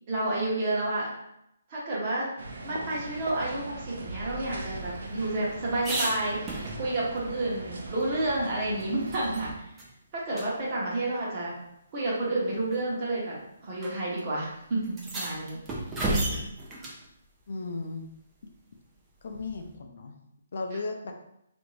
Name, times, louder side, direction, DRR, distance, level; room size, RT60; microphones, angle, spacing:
voice 1, 0.1-1.1 1.7-2.3 2.6-9.6 10.1-11.5 11.9-15.6 16.2-16.3, right 2 dB, 25° right, -5 dB, 0.9 m, -30 dB
sound 1, 2.4-9.5, right 3 dB, 60° right, 0.6 m, -40 dB
sound 2, 4.2-7.2 7.5-7.6 8.0-9.4 9.8-9.9 10.3-10.5 11.5-11.6 12.5-12.8 13.8-13.9 14.2-14.3 14.8-17.0 19.3-19.8, right 1 dB, 10° right, 0.4 m, -34 dB
voice 2, 17.5-18.1 19.2-20.2 20.5-21.1, left 3 dB, 50° left, 3 dB, 0.5 m, -35 dB
3.4 x 2.6 x 3.1 m, 0.80 s
hypercardioid pair, 175°, 0 cm